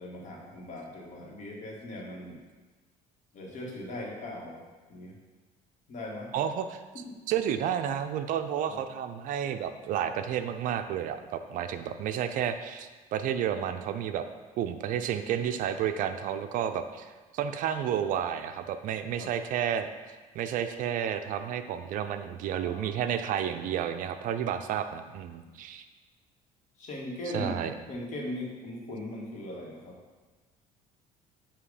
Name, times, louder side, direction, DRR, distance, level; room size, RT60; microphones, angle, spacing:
voice 1, 0.0-2.4 3.3-4.6 4.9-5.2 5.9-6.3 8.7-8.8 19.2-19.3 22.6-22.9 26.8-29.9, left 1 dB, 50° left, -2 dB, 1.6 m, -39 dB
voice 2, 6.3-6.8 7.3-14.2 14.6-19.9 20.3-25.8 27.3-27.7, right 9 dB, 60° right, 9 dB, 0.4 m, -31 dB
7.4 x 2.8 x 4.9 m, 1.3 s
cardioid pair, 120°, 16 cm